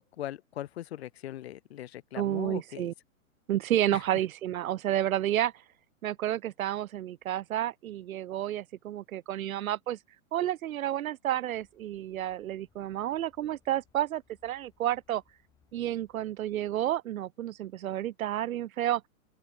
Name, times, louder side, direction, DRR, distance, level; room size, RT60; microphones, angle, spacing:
voice 1, 0.0-2.9 3.9-4.0, left 13 dB, 45° left, 1.1 m, -40 dB
voice 2, 2.1-2.9 3.5-5.5 6.0-10.0 10.3-15.2 15.7-19.0, right 12 dB, 70° right, 0.8 m, -30 dB
sound 1, 11.5-16.9, left 6 dB, 10° left, 3.6 m, -69 dB
open air
hypercardioid pair, 165°, 43 cm